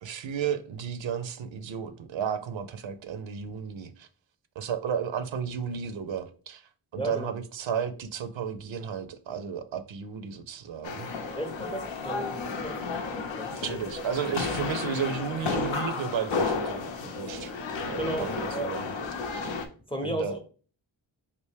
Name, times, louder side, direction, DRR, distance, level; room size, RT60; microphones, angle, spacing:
voice 1, 0.0-4.1 4.6-6.6 6.9-11.1 13.5-17.5 17.8-18.9 19.3-19.4 20.0-20.4, right 7 dB, 70° right, 0.6 m, -33 dB
voice 2, 6.9-7.3 11.4-12.7 13.1-13.5 18.0-18.8 19.9-20.4, right 1 dB, 10° left, 0.6 m, -34 dB
sound 1, 10.8-19.7, left 4 dB, 75° left, 0.6 m, -32 dB
3.4 x 2.5 x 3.2 m
cardioid pair, 70°, 47 cm